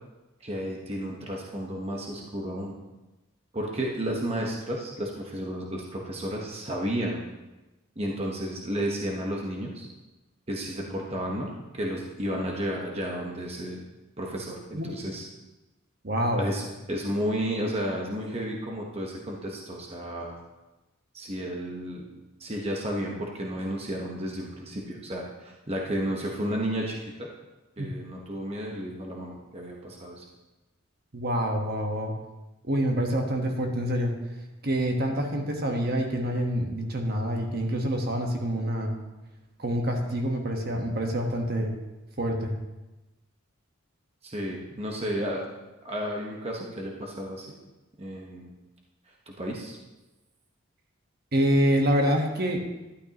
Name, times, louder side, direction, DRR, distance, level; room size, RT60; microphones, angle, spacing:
voice 1, 0.4-2.7 3.5-7.2 8.0-9.9 10.5-13.8 14.2-15.3 16.4-20.4 21.1-22.1 22.4-27.3 27.8-30.2 44.2-45.5 45.8-47.5 48.0-48.5 49.3-49.8, equal, 30° right, -1 dB, 1.1 m, -32 dB
voice 2, 16.0-16.5 27.8-27.9 31.1-32.2 32.6-34.2 34.6-39.0 39.6-41.8 42.2-42.5 51.3-52.7, equal, 50° right, 2 dB, 1.2 m, -26 dB
12.0 x 11.5 x 2.9 m, 1.1 s
head